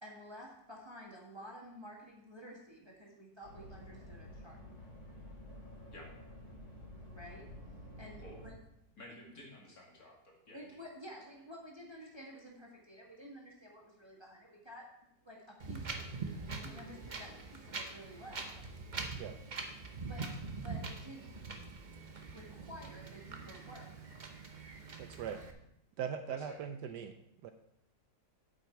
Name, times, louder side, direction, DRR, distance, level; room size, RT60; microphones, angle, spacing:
voice 1, 0.0-4.6 7.1-7.5 8.0-8.6 9.1-9.2 10.5-14.9 15.2-16.1 16.5-18.6 20.0-21.3 22.3-24.1, equal, 15° right, -2 dB, 1.5 m, -51 dB
sound 1, 3.4-8.5, left 1 dB, 35° left, 4.4 m, -51 dB
voice 2, 9.0-10.8 26.3-26.6, left 1 dB, 50° left, -2 dB, 2.6 m, -53 dB
Wind, 15.6-25.5, right 4 dB, 40° right, 0.7 m, -44 dB
voice 3, 25.0-25.4 26.0-27.1 27.4-27.5, right 8 dB, 70° right, 8 dB, 1.1 m, -40 dB
8.3 x 8.1 x 4.5 m, 0.77 s
omnidirectional pair, 2.0 m